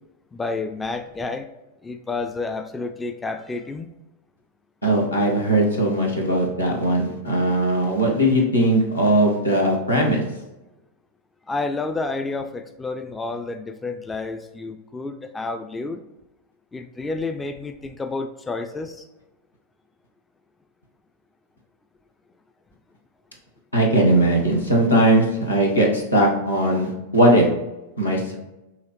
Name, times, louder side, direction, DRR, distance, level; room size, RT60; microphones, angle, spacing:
voice 1, 0.3-1.5 1.8-3.9 11.5-16.0 16.7-19.1, left 3 dB, 10° left, 7 dB, 0.3 m, -30 dB
voice 2, 4.8-10.2 23.7-27.5 28.0-28.3, right 1 dB, 85° left, -2 dB, 1.2 m, -19 dB
5.6 x 3.0 x 3.0 m, 0.98 s
figure-of-eight pair, 90°, 0 cm